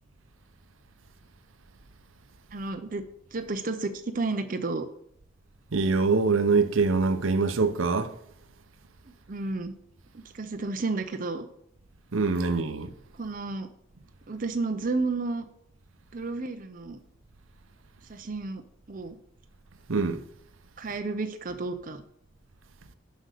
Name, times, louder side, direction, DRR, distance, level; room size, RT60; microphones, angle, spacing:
voice 1, 2.5-3.0 3.3-4.9 9.3-9.7 10.1-11.5 13.1-13.7 14.3-15.4 16.1-17.0 18.1-18.6 18.9-19.2 20.8-22.0, right 3 dB, 40° right, 0.6 m, -31 dB
voice 2, 5.7-8.1 12.1-12.9 19.9-20.2, right 4 dB, 80° right, 0.7 m, -24 dB
7.8 x 5.3 x 6.6 m
head